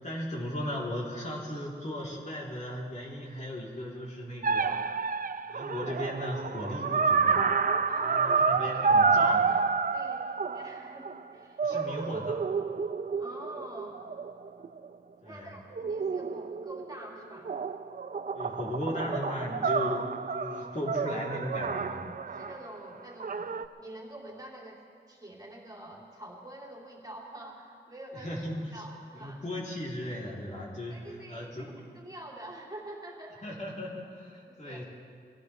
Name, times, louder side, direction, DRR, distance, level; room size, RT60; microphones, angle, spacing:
voice 1, 0.0-4.8 5.5-7.5 8.0-9.5 11.6-12.5 15.2-15.5 18.3-22.1 28.1-28.8 29.2-31.8 33.4-34.8, left 1 dB, 40° left, -5 dB, 3.3 m, -37 dB
sound 1, 4.4-11.2 11.6-14.9 15.8-17.1 17.5-22.6 23.2-23.7, right 5 dB, 45° right, 0.6 m, -29 dB
voice 2, 7.9-8.9 9.2-9.6 9.9-12.1 13.1-14.0 15.2-17.5 22.3-24.8 25.1-28.3 28.7-29.4 30.9-33.6 34.5-34.8, right 1 dB, 20° right, -3 dB, 3.1 m, -46 dB
22.5 x 16.5 x 3.3 m, 2.2 s
wide cardioid pair, 75°, 19 cm